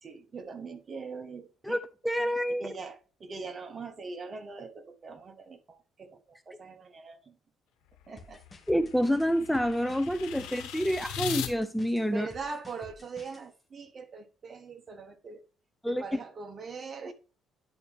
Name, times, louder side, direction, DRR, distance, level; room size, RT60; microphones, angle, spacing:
voice 1, 0.0-1.8 2.6-7.4 8.1-8.4 10.4-10.5 12.1-15.4 15.9-17.1, right 4 dB, 40° right, 1.3 m, -42 dB
voice 2, 2.0-2.6 8.7-12.3 15.8-16.0, equal, ahead, 0.5 m, -27 dB
sound 1, 7.9-11.5, left 10 dB, 90° left, 1.1 m, -39 dB
sound 2, 8.2-13.4, left 2 dB, 20° left, 1.5 m, -52 dB
10.5 x 4.3 x 3.4 m
cardioid pair, 90°, 0 cm